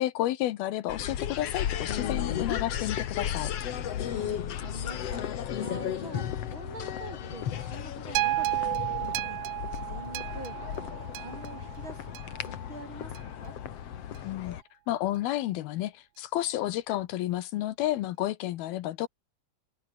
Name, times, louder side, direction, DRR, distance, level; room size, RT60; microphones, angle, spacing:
voice 1, 0.0-3.5 14.2-14.6 14.9-19.1, left 14 dB, 80° left, 2.8 m, -31 dB
sound 1, 0.9-14.6, left 9 dB, 55° left, 2.0 m, -34 dB
voice 2, 3.7-5.3 5.6-9.4 9.7-12.1 12.4-13.5, right 3 dB, 30° right, 5.4 m, -46 dB
sound 2, 8.2-12.5 13.2-13.3, right 17 dB, 85° right, 3.0 m, -32 dB
omnidirectional pair, 4.5 m